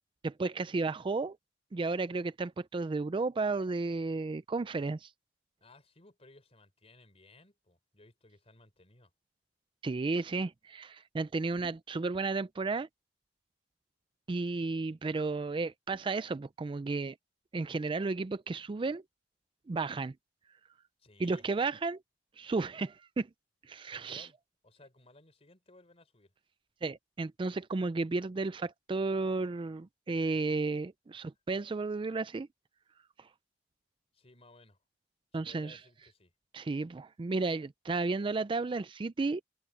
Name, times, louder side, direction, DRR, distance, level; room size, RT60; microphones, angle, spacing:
voice 1, 0.2-1.4 1.7-5.1 9.8-12.9 14.3-17.2 17.5-19.0 19.7-20.1 21.2-22.0 22.4-23.3 23.7-24.3 26.8-32.5 33.2-33.3 35.3-35.8 36.5-39.4, right 3 dB, 30° right, 0.4 m, -33 dB
voice 2, 5.6-9.1 21.0-21.5 23.9-24.4 24.6-26.3 31.1-31.3 34.1-34.8 35.3-36.3, left 2 dB, 35° left, 4.0 m, -59 dB
head